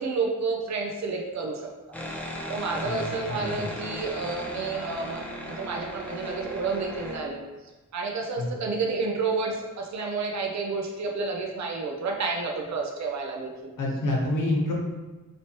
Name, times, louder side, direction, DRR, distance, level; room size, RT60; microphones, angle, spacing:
voice 1, 0.0-1.7 2.5-7.4 7.9-13.7, right 4 dB, 55° right, 1 dB, 0.6 m, -30 dB
sound 1, 1.9-7.2, equal, 5° left, 0.4 m, -37 dB
voice 2, 13.8-14.7, left 1 dB, 70° left, -2 dB, 1.0 m, -27 dB
4.3 x 3.1 x 2.9 m, 1.2 s
wide cardioid pair, 165°, 32 cm